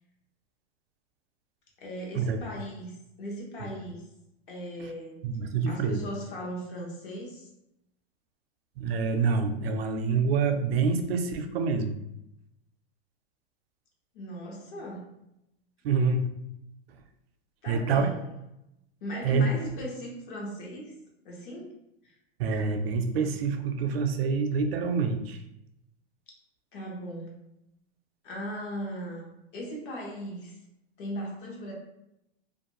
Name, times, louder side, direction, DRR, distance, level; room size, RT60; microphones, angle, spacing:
voice 1, 1.8-4.0 4.5-5.2 5.7-7.5 14.1-15.1 17.6-18.3 19.0-20.9 21.2-21.7 22.0-22.2 26.7-27.3 28.2-30.6 31.0-31.7, equal, 55° left, -2 dB, 0.9 m, -38 dB
voice 2, 5.2-6.0 8.8-12.0 15.8-16.3 17.7-18.1 19.2-19.5 22.4-25.4, right 5 dB, 65° right, 7 dB, 0.5 m, -26 dB
2.5 x 2.2 x 3.0 m, 0.85 s
supercardioid pair, 175°, 32 cm